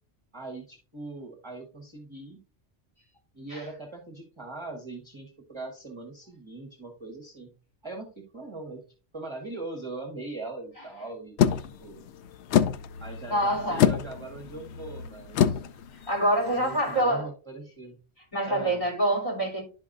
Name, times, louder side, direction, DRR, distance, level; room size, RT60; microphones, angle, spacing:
voice 1, 0.3-2.4 3.3-7.5 7.8-8.8 9.1-11.5 11.8-12.0 13.0-15.6 16.5-18.0 18.4-18.9, right 3 dB, 25° right, 1.1 m, -40 dB
sound 1, 11.4-17.0, left 9 dB, 75° left, 0.8 m, -27 dB
voice 2, 13.3-13.9 16.1-17.3 18.3-19.6, right 1 dB, 30° left, 3.3 m, -26 dB
11.5 x 4.6 x 2.5 m
omnidirectional pair, 1.2 m